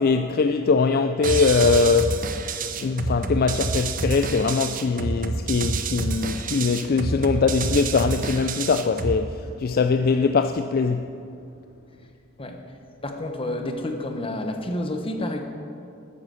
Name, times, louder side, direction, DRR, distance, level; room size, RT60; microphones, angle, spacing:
voice 1, 0.0-2.2 2.8-11.1, left 4 dB, 45° left, 0.4 m, -22 dB
sound 1, 1.2-9.2, right 3 dB, 40° right, 0.8 m, -28 dB
voice 2, 13.0-15.4, left 1 dB, 25° left, 1.2 m, -29 dB
13.0 x 9.8 x 6.5 m
head